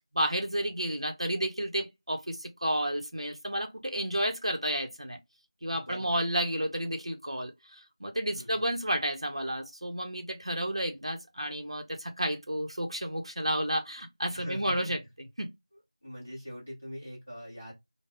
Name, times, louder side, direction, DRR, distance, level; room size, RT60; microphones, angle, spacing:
voice 1, 0.1-5.2 5.6-15.5, equal, 65° right, 0.6 m, -31 dB
voice 2, 5.6-6.3 8.3-8.7 14.3-14.9 16.0-17.7, equal, 15° left, 0.7 m, -43 dB
2.2 x 2.0 x 3.4 m
figure-of-eight pair, 180°, 3 cm